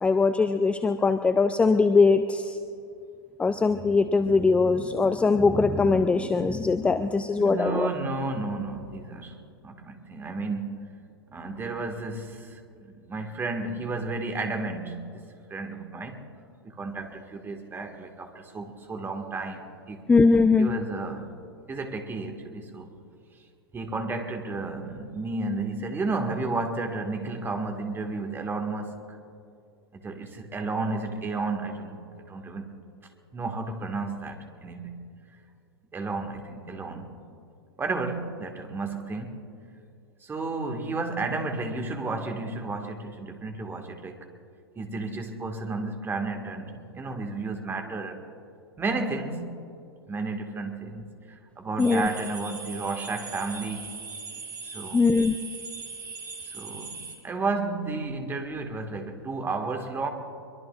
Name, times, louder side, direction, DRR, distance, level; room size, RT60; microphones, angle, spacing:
voice 1, 0.0-2.6 3.4-7.9 20.1-20.7 51.8-52.1 54.9-55.4, left 4 dB, 10° left, 10 dB, 0.5 m, -21 dB
voice 2, 7.2-9.4 9.6-10.8 11.3-15.2 15.5-16.2 16.6-20.0 20.6-21.3 21.7-23.0 23.7-29.0 29.9-32.7 33.3-35.0 35.9-37.1 37.8-39.4 40.2-44.3 44.8-48.3 48.8-49.5 50.1-51.1 51.6-53.9 54.6-55.1 56.4-57.0 57.2-60.1, right 3 dB, 15° right, 4 dB, 1.8 m, -32 dB
sound 1, 51.8-57.2, right 5 dB, 60° right, 3.2 m, -40 dB
24.0 x 23.0 x 2.5 m, 2.5 s
figure-of-eight pair, 95°, 12 cm